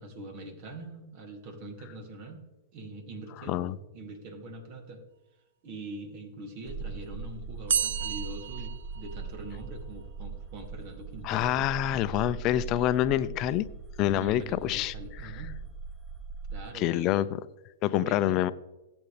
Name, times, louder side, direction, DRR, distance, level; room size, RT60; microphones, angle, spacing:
voice 1, 0.0-2.4 2.7-5.0 5.6-11.5 14.0-15.5 16.5-17.2 17.9-18.4, right 2 dB, 50° right, 3.0 m, -43 dB
sound 1, 6.7-16.7, right 4 dB, 35° right, 3.6 m, -40 dB
sound 2, 7.7-9.6, right 8 dB, 75° right, 0.5 m, -31 dB
voice 2, 11.2-13.7 14.0-14.9 15.2-15.3 16.7-17.3 17.8-18.5, left 13 dB, 40° left, 0.7 m, -26 dB
19.0 x 8.3 x 3.5 m
hypercardioid pair, 110°, 0 cm